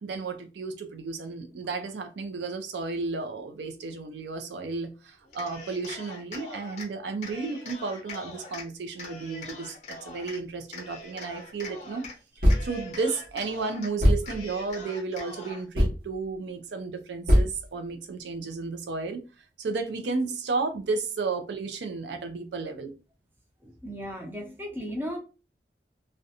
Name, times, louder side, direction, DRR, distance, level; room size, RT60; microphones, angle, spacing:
voice 1, 0.0-12.1 12.6-19.2 19.6-22.9, right 4 dB, 80° right, 0.4 m, -33 dB
Cheering, 5.3-6.9 7.2-8.7 9.0-10.4 10.7-12.2 12.4-13.9 14.2-15.6, left 2 dB, 40° left, 0.6 m, -42 dB
sound 1, 12.4-12.8 13.3-13.4 14.0-14.4 15.7-16.0 17.3-17.6, equal, 50° right, 0.8 m, -21 dB
voice 2, 23.6-25.2, equal, 10° right, 0.5 m, -35 dB
2.4 x 2.1 x 2.7 m
head